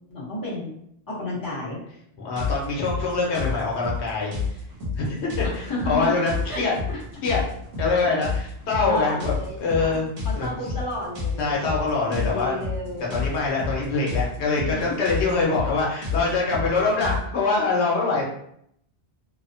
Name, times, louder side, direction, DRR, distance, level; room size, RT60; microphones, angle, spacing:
voice 1, 0.1-0.7 1.1-1.8 5.4-7.0 8.8-10.0 10.2-11.6 12.1-13.2 14.6-14.9, left 1 dB, 20° left, -7 dB, 0.9 m, -32 dB
voice 2, 2.2-4.6 4.9-6.7 7.2-7.4 7.8-9.3 9.6-10.1 10.4-10.5 11.4-12.5 13.1-18.2, left 3 dB, 85° left, -3 dB, 1.0 m, -24 dB
sound 1, 2.4-17.2, left 4 dB, 60° right, 1.0 m, -30 dB
2.9 x 2.0 x 2.6 m, 0.73 s
omnidirectional pair, 1.1 m